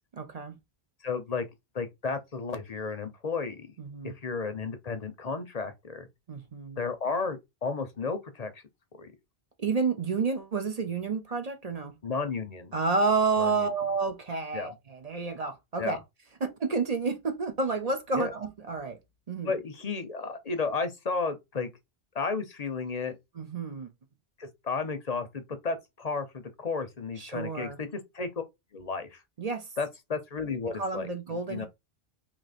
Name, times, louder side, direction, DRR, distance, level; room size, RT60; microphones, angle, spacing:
voice 1, 0.2-0.5 3.8-4.1 6.3-6.8 9.6-11.9 12.7-16.0 16.4-19.0 19.3-19.6 23.3-23.9 27.2-27.8 29.4-29.7 30.7-31.7, right 4 dB, 40° right, 0.7 m, -30 dB
voice 2, 1.0-1.5 1.7-3.7 4.0-6.1 6.8-8.6 9.0-9.1 12.0-12.7 13.4-13.7 14.5-14.7 15.8-16.0 18.2-18.3 19.4-21.7 22.1-23.2 24.4-28.3 28.7-29.2 29.8-31.7, left 4 dB, 45° left, 0.7 m, -33 dB
3.1 x 2.9 x 4.1 m
omnidirectional pair, 1.1 m